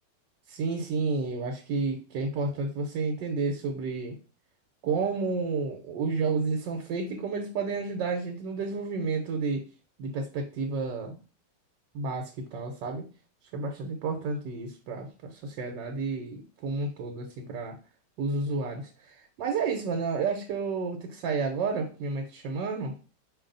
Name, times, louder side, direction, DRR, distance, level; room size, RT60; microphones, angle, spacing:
voice 1, 0.5-4.2 4.8-9.7 10.0-11.2 11.9-13.1 13.5-17.8 18.2-22.9, right 4 dB, 90° right, 3 dB, 1.4 m, -31 dB
4.8 x 2.7 x 3.8 m, 0.34 s
omnidirectional pair, 1.9 m